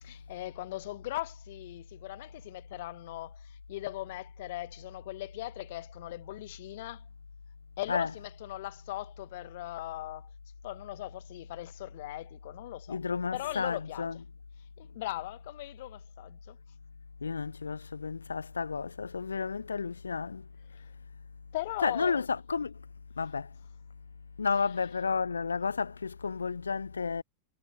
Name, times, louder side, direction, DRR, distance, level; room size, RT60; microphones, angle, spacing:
voice 1, 0.0-7.0 7.8-10.3 10.6-13.0 13.3-14.1 14.8-16.6 21.5-22.2, left 17 dB, 55° left, 2.3 m, -39 dB
voice 2, 12.9-14.2 17.2-20.5 21.8-22.8 23.2-23.5 24.4-27.2, left 5 dB, 75° left, 1.0 m, -32 dB
figure-of-eight pair, 90°, 0 cm